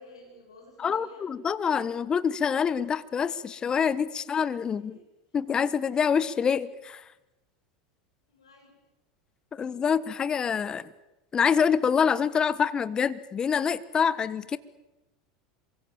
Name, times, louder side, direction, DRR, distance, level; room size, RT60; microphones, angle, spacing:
voice 1, 0.0-1.3 4.7-5.0 8.3-8.8, left 2 dB, 85° left, 2 dB, 7.5 m, -51 dB
voice 2, 0.8-5.0 5.3-7.0 9.5-10.9 11.3-14.6, left 7 dB, 30° left, 16 dB, 1.3 m, -26 dB
27.0 x 23.5 x 7.5 m, 1.0 s
hypercardioid pair, 85°, 3 cm